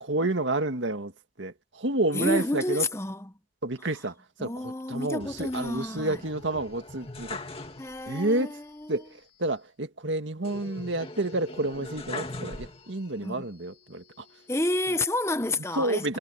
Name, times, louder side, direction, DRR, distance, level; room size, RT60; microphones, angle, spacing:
voice 1, 0.0-2.9 3.6-7.7 8.1-8.6 8.9-14.3 14.9-15.0 15.8-16.2, right 2 dB, 85° right, 2.0 m, -30 dB
voice 2, 2.1-3.2 4.4-6.2 7.8-8.9 13.2-13.4 14.5-16.2, left 2 dB, 15° left, 0.8 m, -30 dB
sound 1, 5.2-8.2 8.5-8.6 10.4-13.2 13.7-14.5, left 2 dB, 30° left, 2.2 m, -41 dB
head